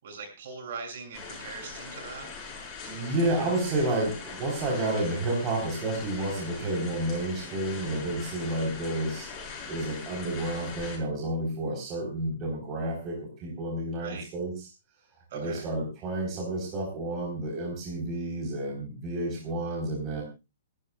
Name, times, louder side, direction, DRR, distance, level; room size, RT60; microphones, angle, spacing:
voice 1, 0.0-2.3 14.0-14.3 15.3-15.6, right 5 dB, 60° right, 3 dB, 6.8 m, -41 dB
sound 1, 1.1-11.0, left 5 dB, 25° left, 6.5 m, -41 dB
voice 2, 2.8-9.3 9.7-14.7 15.3-20.2, right 1 dB, 30° right, -1 dB, 4.0 m, -30 dB
26.5 x 12.0 x 2.4 m, 0.27 s
hypercardioid pair, 150°, 0 cm